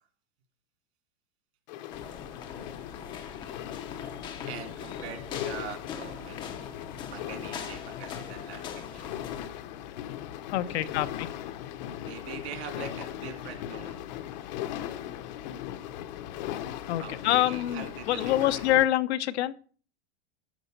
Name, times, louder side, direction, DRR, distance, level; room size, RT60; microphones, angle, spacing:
sound 1, 1.7-18.8, left 11 dB, 45° left, 0.8 m, -39 dB
sound 2, 1.9-9.5, left 7 dB, 15° left, 0.5 m, -42 dB
voice 1, 4.5-9.1 10.7-11.1 12.0-14.1 16.9-18.6, right 9 dB, 70° right, 5 dB, 2.8 m, -43 dB
voice 2, 10.5-11.3 16.9-19.5, left 14 dB, 75° left, 14 dB, 0.8 m, -26 dB
12.5 x 5.1 x 6.6 m, 0.42 s
supercardioid pair, 175°, 33 cm